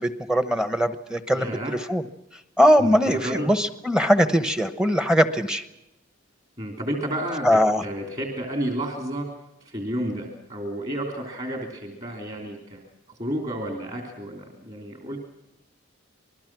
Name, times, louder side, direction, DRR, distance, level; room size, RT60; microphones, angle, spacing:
voice 1, 0.0-2.0 2.6-5.7 7.4-7.8, equal, 5° right, 10 dB, 1.0 m, -21 dB
voice 2, 1.3-1.7 2.8-3.5 6.6-7.5 7.8-9.3 9.6-12.8 13.1-15.2, right 1 dB, 35° right, 2 dB, 3.1 m, -31 dB
27.0 x 20.5 x 6.1 m, 0.90 s
head